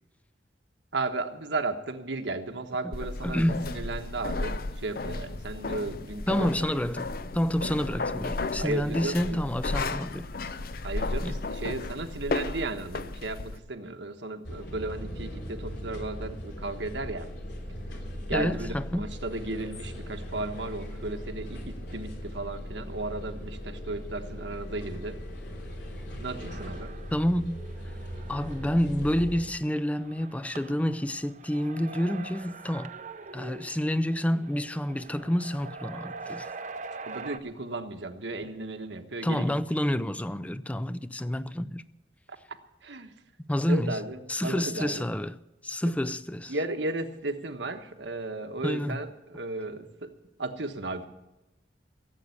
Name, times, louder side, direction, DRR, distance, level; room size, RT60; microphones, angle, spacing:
voice 1, 0.9-6.8 8.6-9.4 10.8-17.3 18.3-25.2 26.2-26.9 37.0-39.5 42.8-43.1 43.7-45.0 46.5-50.1 50.4-51.1, right 2 dB, 80° right, 1.3 m, -35 dB
sound 1, 2.9-13.6, left 3 dB, 50° left, 0.6 m, -34 dB
voice 2, 3.2-3.7 6.3-10.3 11.2-11.3 18.3-19.1 27.1-27.6 28.3-32.9 33.3-36.5 39.2-41.8 43.5-44.0 44.3-45.4 45.6-46.5 48.6-49.0, equal, 10° left, 0.4 m, -28 dB
sound 2, 14.4-29.4, equal, 70° left, 3.3 m, -39 dB
sound 3, 26.5-37.4, right 4 dB, 40° right, 0.7 m, -44 dB
16.5 x 8.3 x 8.3 m
head